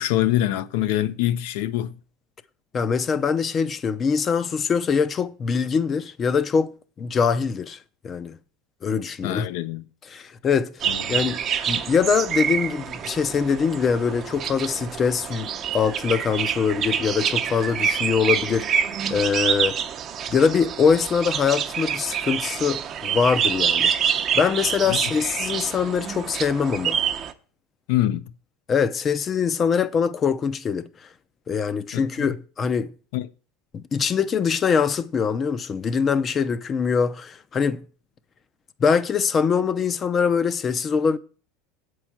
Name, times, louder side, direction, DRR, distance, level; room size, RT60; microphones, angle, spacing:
voice 1, 0.0-2.0 9.2-9.9 10.8-11.3 24.8-25.1 27.9-28.3 31.9-32.4 33.1-33.3, left 13 dB, 75° left, 0.6 m, -25 dB
voice 2, 2.7-7.8 8.0-8.4 8.8-9.5 10.1-19.8 20.3-27.0 28.7-31.1 31.5-32.9 33.7-37.8 38.8-41.2, left 6 dB, 30° left, 0.6 m, -23 dB
sound 1, 10.8-27.3, right 8 dB, 35° right, 0.7 m, -27 dB
7.9 x 4.7 x 7.3 m
supercardioid pair, 125°, 0 cm